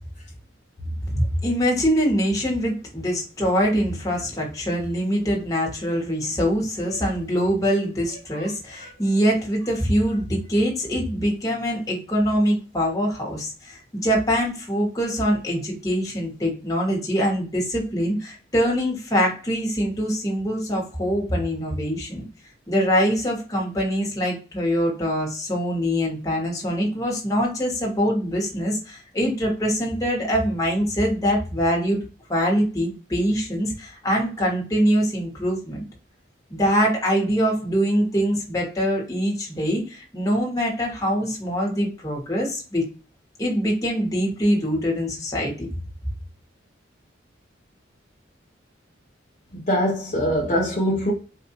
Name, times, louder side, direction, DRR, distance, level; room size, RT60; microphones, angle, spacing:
voice 1, 1.1-22.2 22.7-35.8 36.5-42.8 43.4-45.7, equal, 20° left, 1.3 m, -24 dB
voice 2, 49.5-51.1, equal, 40° left, 0.8 m, -23 dB
4.5 x 2.5 x 2.8 m
head